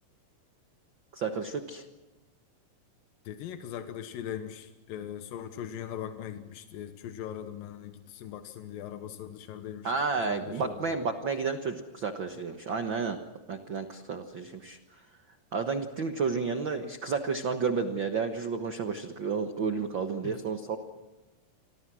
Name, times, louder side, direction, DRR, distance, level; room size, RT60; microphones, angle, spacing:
voice 1, 1.1-1.8 9.8-13.2 13.5-15.0 15.5-20.8, right 5 dB, 55° right, 7 dB, 1.3 m, -31 dB
voice 2, 3.3-9.9 10.2-10.9 20.2-20.4, left 10 dB, 85° left, 8 dB, 2.8 m, -40 dB
29.0 x 25.0 x 6.2 m, 1.2 s
omnidirectional pair, 4.0 m